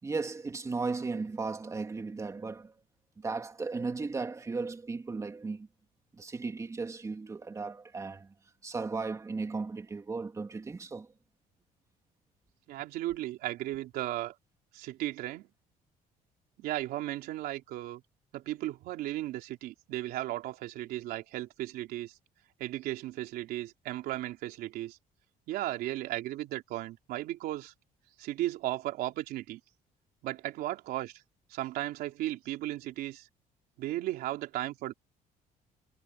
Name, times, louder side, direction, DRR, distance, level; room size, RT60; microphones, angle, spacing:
voice 1, 0.0-2.7 3.2-5.7 6.1-8.3 8.6-11.1, right 4 dB, 20° right, 2.7 m, -36 dB
voice 2, 12.7-14.4 14.7-15.5 16.6-18.0 18.3-22.1 22.6-25.0 25.5-27.7 28.2-29.6 30.2-31.1 31.5-33.3 33.8-34.9, right 15 dB, 80° right, 3.5 m, -35 dB
cardioid pair, 135°, 15 cm